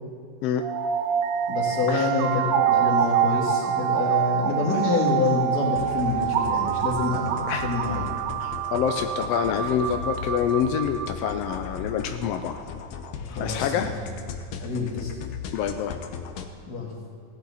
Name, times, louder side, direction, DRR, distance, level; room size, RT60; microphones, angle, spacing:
sound 1, 0.6-11.6, right 9 dB, 70° right, 1.8 m, -26 dB
voice 1, 1.5-8.1 13.3-13.9 14.6-15.1 16.7-16.9, left 4 dB, 35° left, -2 dB, 2.0 m, -27 dB
sound 2, 5.8-16.5, left 6 dB, 70° left, 1.6 m, -37 dB
voice 2, 8.4-12.6 13.4-13.9 15.5-16.0, left 8 dB, 90° left, 6 dB, 1.4 m, -26 dB
15.5 x 10.0 x 4.1 m, 2.4 s
omnidirectional pair, 3.4 m